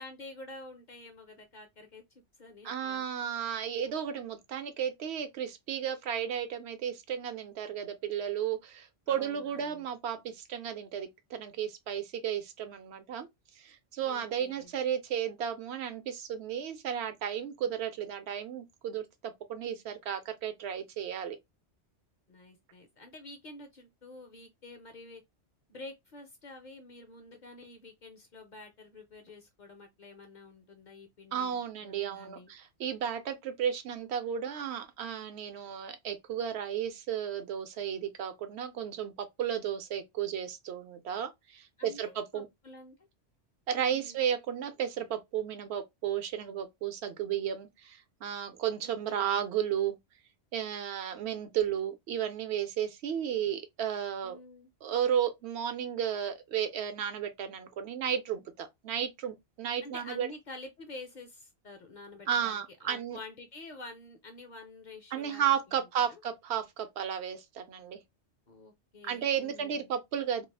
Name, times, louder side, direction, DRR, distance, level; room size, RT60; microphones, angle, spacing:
voice 1, 0.0-2.0 2.3-3.1 9.1-9.9 14.0-14.7 22.3-25.2 25.7-32.5 41.8-43.0 43.8-44.3 48.8-49.4 54.2-54.7 59.8-66.2 68.5-69.9, left 2 dB, 55° left, 0.6 m, -49 dB
voice 2, 2.6-13.3 13.6-21.4 31.3-39.1 39.4-42.5 43.7-50.0 50.5-54.4 54.8-60.3 62.3-63.2 65.1-68.0 69.0-70.4, right 9 dB, 75° right, 0.8 m, -33 dB
2.4 x 2.3 x 3.2 m
omnidirectional pair, 1.2 m